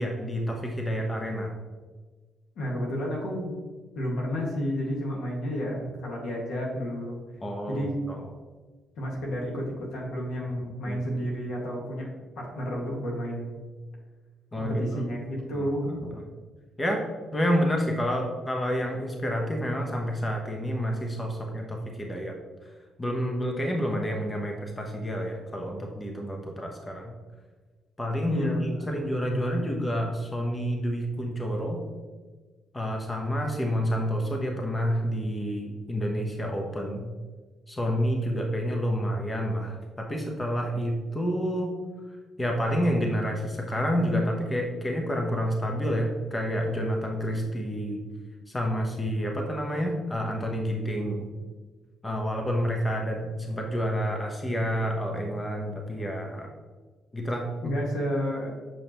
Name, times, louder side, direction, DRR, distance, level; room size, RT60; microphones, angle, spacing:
voice 1, 0.0-1.5 7.4-8.2 10.9-11.0 14.5-15.0 15.5-15.7 16.8-17.0 17.3-22.3 23.0-27.1 28.0-31.8 32.7-37.1 37.7-41.7 42.4-48.0 48.5-51.3 52.0-56.5 57.1-57.7, equal, 20° left, 1 dB, 1.0 m, -29 dB
voice 2, 2.6-3.6 3.9-7.2 7.7-7.9 9.0-12.1 12.4-13.6 14.6-16.1 28.3-28.6 29.3-29.6 57.6-58.5, equal, 75° left, -1 dB, 1.8 m, -31 dB
7.1 x 5.1 x 3.0 m, 1.3 s
cardioid pair, 90°, 0 cm